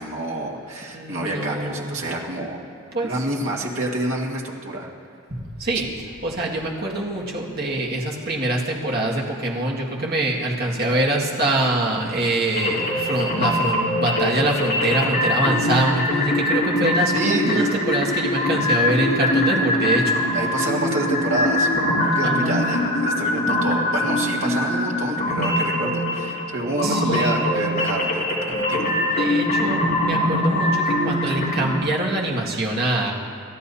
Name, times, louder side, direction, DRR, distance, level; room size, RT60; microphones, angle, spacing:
voice 1, 0.0-2.6 3.0-4.9 5.7-5.8 17.1-17.7 18.1-18.2 20.3-21.7 22.0-29.3 31.3-31.4, right 2 dB, 75° right, -2 dB, 2.0 m, -28 dB
voice 2, 0.9-1.9 2.9-3.1 5.3-5.9 6.2-20.0 22.2-22.6 26.8-27.4 29.0-33.1, right 1 dB, 45° right, -3 dB, 2.0 m, -24 dB
sound 1, 12.5-31.8, left 1 dB, 45° left, 3.1 m, -22 dB
28.5 x 13.0 x 2.8 m, 2.4 s
head